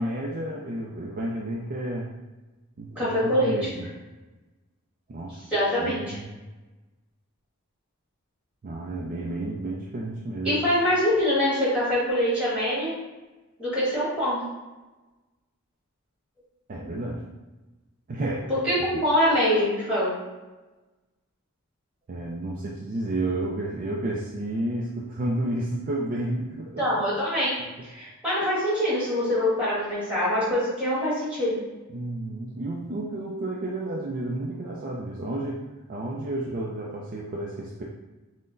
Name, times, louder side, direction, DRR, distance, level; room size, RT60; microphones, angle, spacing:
voice 1, 0.0-2.1 2.8-3.9 5.1-5.4 5.8-6.3 8.6-10.6 16.7-17.2 18.1-18.5 22.1-26.9 31.9-35.6 35.9-37.8, right 1 dB, 40° right, -3 dB, 0.4 m, -31 dB
voice 2, 2.9-3.5 5.5-6.1 10.4-12.9 13.6-14.4 18.5-20.1 26.8-27.6 27.8-31.6, left 1 dB, 5° right, -8 dB, 1.5 m, -24 dB
5.5 x 2.1 x 2.5 m, 1.1 s
head